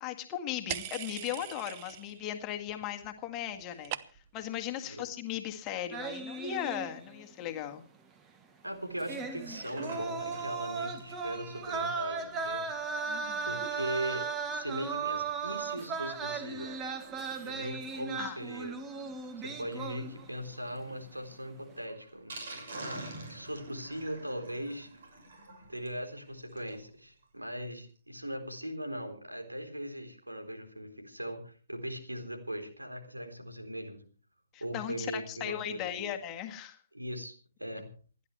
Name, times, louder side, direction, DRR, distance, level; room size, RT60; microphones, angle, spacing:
voice 1, 0.0-4.0 4.3-7.8 13.1-13.7 18.2-18.4 34.5-36.8, left 11 dB, 25° left, 5 dB, 1.8 m, -37 dB
sound 1, 0.7-2.3 2.6-3.1 3.4-4.5, right 13 dB, 30° right, 0.8 m, -41 dB
sound 2, 5.9-7.3 7.6-7.7 9.0-20.5 20.8-21.1, right 5 dB, 15° right, 1.4 m, -37 dB
voice 2, 8.6-12.6 13.4-14.3 14.5-16.8 17.4-18.7 19.4-24.9 25.7-34.0 34.6-36.1 36.9-37.3 37.6-37.9, equal, 85° right, 4 dB, 3.8 m, -39 dB
Sink (filling or washing), 8.8-26.9 27.2-27.3 27.5-27.6 28.0-28.1, right 2 dB, 55° right, 6.4 m, -50 dB
28.0 x 11.0 x 3.3 m, 0.38 s
figure-of-eight pair, 130°, 0 cm